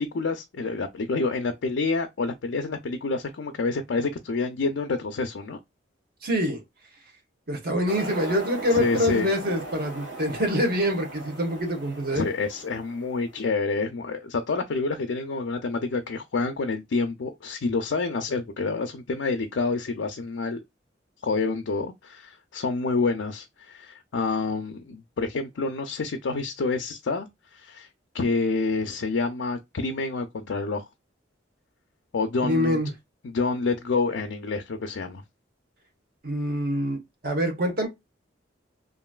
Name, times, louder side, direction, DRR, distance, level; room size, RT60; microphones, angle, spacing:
voice 1, 0.0-5.6 8.7-9.3 12.1-20.6 21.2-27.3 27.5-27.9 28.1-30.8 32.1-32.8 33.2-35.2, left 3 dB, 85° left, 0.5 m, -28 dB
voice 2, 6.2-6.6 7.5-12.3 32.4-32.9 36.2-37.0 37.2-37.9, equal, 55° right, 1.1 m, -25 dB
sound 1, 7.9-13.4, right 2 dB, 70° right, 1.3 m, -38 dB
3.0 x 2.5 x 2.3 m
head